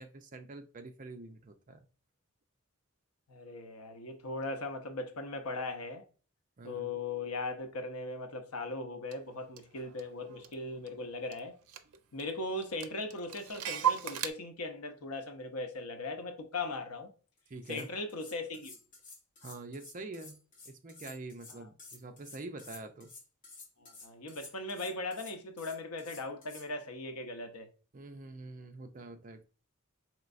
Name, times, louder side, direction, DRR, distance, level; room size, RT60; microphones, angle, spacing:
voice 1, 0.0-1.8 6.6-6.9 11.9-12.0 17.5-17.9 19.4-20.4 20.6-23.1 27.9-29.4, right 2 dB, 35° right, 0.5 m, -46 dB
voice 2, 3.3-6.0 6.6-11.6 12.1-17.1 17.7-18.8 21.6-21.7 23.8-27.7, left 2 dB, 80° left, 0.7 m, -39 dB
Clock, 9.1-9.2 9.6-11.0 11.3-11.4 11.7-12.3 12.6-14.3, right 10 dB, 90° right, 0.5 m, -35 dB
sound 1, 17.4-17.5 17.6-26.7, left 4 dB, 35° left, 1.1 m, -52 dB
4.4 x 3.1 x 2.5 m
head